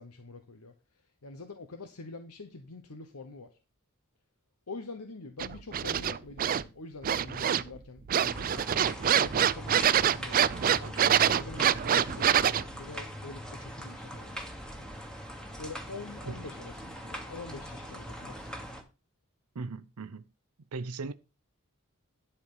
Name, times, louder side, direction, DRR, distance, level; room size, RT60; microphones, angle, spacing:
voice 1, 0.0-3.6 4.7-11.0 11.4-14.6 15.6-18.7, left 3 dB, 85° left, 1.0 m, -46 dB
sound 1, 5.4-6.6 7.0-7.8 8.1-12.6, right 9 dB, 40° right, 0.4 m, -25 dB
sound 2, 8.3-18.8, equal, 5° left, 1.4 m, -41 dB
voice 2, 19.5-20.2 20.7-21.1, right 3 dB, 90° right, 0.7 m, -37 dB
11.0 x 4.6 x 5.6 m
head